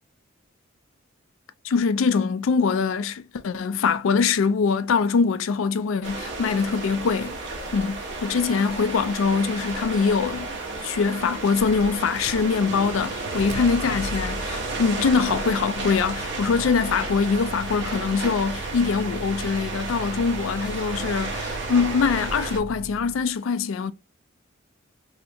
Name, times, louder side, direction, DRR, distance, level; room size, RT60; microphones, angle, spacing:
voice 1, 1.6-7.3 7.7-10.5 10.8-23.9, left 5 dB, 70° left, 0.4 m, -23 dB
sound 1, 6.0-22.6, right 3 dB, 60° right, 1.0 m, -33 dB
Motor vehicle (road), 12.1-23.3, right 1 dB, 80° right, 0.4 m, -38 dB
3.3 x 2.8 x 2.6 m
head